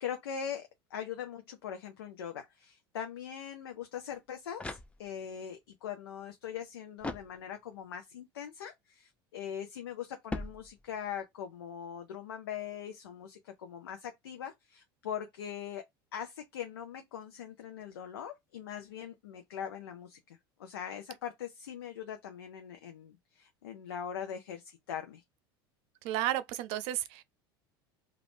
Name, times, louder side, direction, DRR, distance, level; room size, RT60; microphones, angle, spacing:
voice 1, 0.0-15.8 16.1-25.2, left 8 dB, 85° left, 0.5 m, -41 dB
sound 1, 4.2-5.4 7.0-7.9 10.3-11.2, left 2 dB, 10° left, 0.4 m, -42 dB
voice 2, 26.0-27.2, right 13 dB, 60° right, 0.5 m, -32 dB
2.4 x 2.1 x 3.4 m
hypercardioid pair, 90°, 12 cm